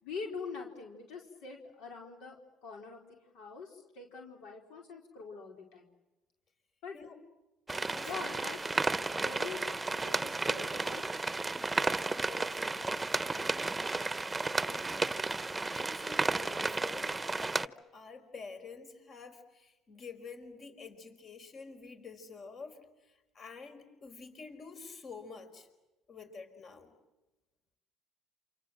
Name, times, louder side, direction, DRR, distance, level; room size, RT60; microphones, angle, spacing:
voice 1, 0.0-2.4 2.6-5.9 6.8-7.0 8.0-8.7 9.0-9.6 10.0-11.0, left 5 dB, 75° left, 1 dB, 4.3 m, -44 dB
voice 2, 7.7-8.4 11.6-13.7 14.4-15.2 15.7-25.7 26.1-26.9, left 4 dB, 50° left, 7 dB, 4.9 m, -49 dB
sound 1, 7.7-17.7, right 3 dB, 15° right, 1.0 m, -33 dB
29.0 x 27.0 x 7.7 m, 1.0 s
supercardioid pair, 75°, 0 cm